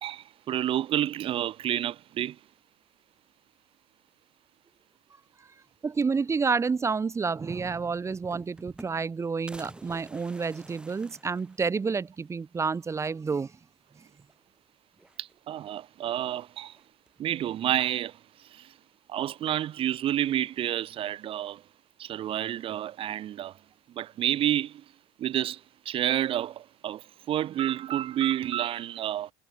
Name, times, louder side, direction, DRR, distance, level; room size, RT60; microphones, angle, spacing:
voice 1, 0.0-2.4 15.2-16.8 17.2-18.7 19.1-21.6 22.0-23.6 23.9-24.8 25.2-29.3, right 12 dB, 45° right, 0.7 m, -30 dB
voice 2, 5.8-13.6 14.0-14.1, right 5 dB, 20° right, 1.1 m, -29 dB
sound 1, 7.8-9.2 9.5-12.1 12.5-12.6 12.8-12.9 14.1-14.6 14.9-15.7 16.7-17.3, right 1 dB, 5° right, 6.0 m, -50 dB
supercardioid pair, 90°, 13 cm